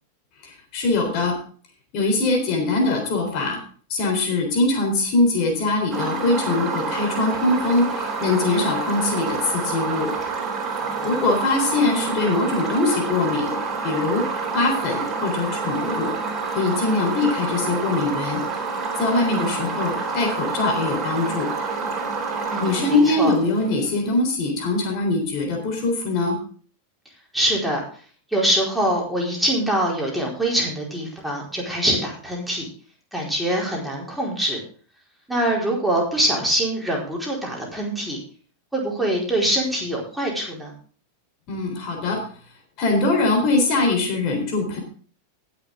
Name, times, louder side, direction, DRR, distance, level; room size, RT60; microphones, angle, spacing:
voice 1, 0.4-1.4 1.9-3.6 3.9-10.1 11.0-13.5 13.8-14.3 14.5-16.1 16.5-18.4 19.0-21.5 22.6-26.4 41.5-42.2 42.8-44.8, left 2 dB, 40° left, 2 dB, 3.7 m, -22 dB
sound 1, 5.9-23.9, right 4 dB, 20° right, 3.9 m, -28 dB
voice 2, 10.8-11.1 22.5-23.3 27.3-27.8 28.3-32.7 33.1-34.6 35.3-38.2 38.7-40.7, right 1 dB, ahead, -3 dB, 4.4 m, -24 dB
19.0 x 6.7 x 3.6 m, 0.43 s
figure-of-eight pair, 90°, 0 cm